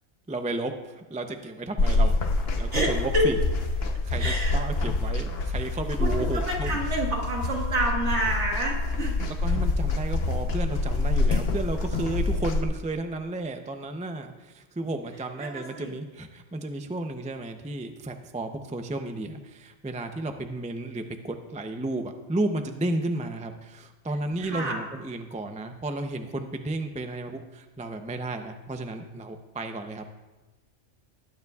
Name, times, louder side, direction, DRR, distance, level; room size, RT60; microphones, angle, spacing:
voice 1, 0.3-3.4 3.8-6.8 9.2-30.1, right 2 dB, 10° right, 6 dB, 0.3 m, -33 dB
sound 1, 1.8-12.6, left 2 dB, 55° left, 1.1 m, -26 dB
voice 2, 2.7-3.3 4.2-4.6 6.0-9.3 15.4-15.9 24.4-24.8, right 1 dB, 65° right, -1 dB, 2.1 m, -28 dB
19.5 x 9.4 x 2.4 m, 1.2 s
omnidirectional pair, 1.3 m